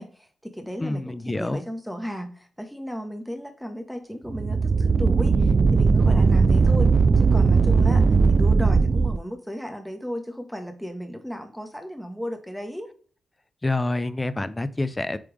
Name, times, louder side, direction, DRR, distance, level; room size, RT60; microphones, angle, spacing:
voice 1, 0.0-12.9, equal, ahead, 5 dB, 1.3 m, -35 dB
voice 2, 0.8-1.7 13.6-15.2, left 2 dB, 20° left, 15 dB, 0.5 m, -27 dB
sound 1, 4.3-9.2, right 4 dB, 50° right, 0.4 m, -18 dB
8.5 x 3.4 x 3.5 m, 0.43 s
cardioid pair, 70°, 0 cm